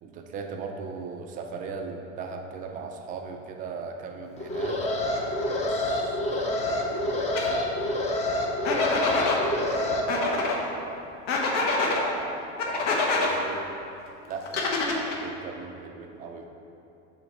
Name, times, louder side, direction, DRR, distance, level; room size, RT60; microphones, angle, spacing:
voice 1, 0.0-8.0 8.4-11.1 11.5-13.6 14.3-16.5, right 4 dB, 25° right, 3 dB, 0.3 m, -38 dB
Alarm, 4.4-10.0, left 1 dB, 20° left, 0.6 m, -28 dB
sound 1, 7.4-7.5 8.6-9.4 10.1-10.6 11.3-12.0 12.6-13.3 14.5-15.2, left 3 dB, 70° left, 1.3 m, -25 dB
7.0 x 4.4 x 5.3 m, 2.7 s
supercardioid pair, 150°, 38 cm